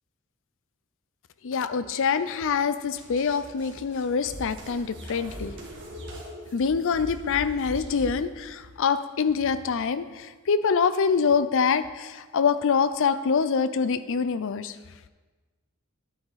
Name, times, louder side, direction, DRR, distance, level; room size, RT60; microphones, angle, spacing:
voice 1, 1.4-5.5 6.5-14.8, left 5 dB, 60° left, 13 dB, 0.5 m, -25 dB
sound 1, 2.9-8.3, equal, 60° right, 2.3 m, -40 dB
10.5 x 8.7 x 4.1 m, 1.3 s
head